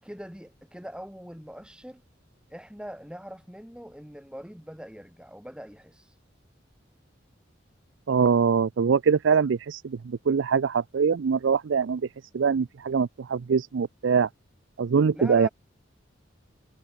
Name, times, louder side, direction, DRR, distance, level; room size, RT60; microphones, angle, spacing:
voice 1, 0.0-2.0 2.5-6.1 15.1-15.5, equal, 5° right, 5.3 m, -42 dB
voice 2, 8.1-12.0 12.3-14.3 14.8-15.5, right 6 dB, 80° right, 0.4 m, -23 dB
head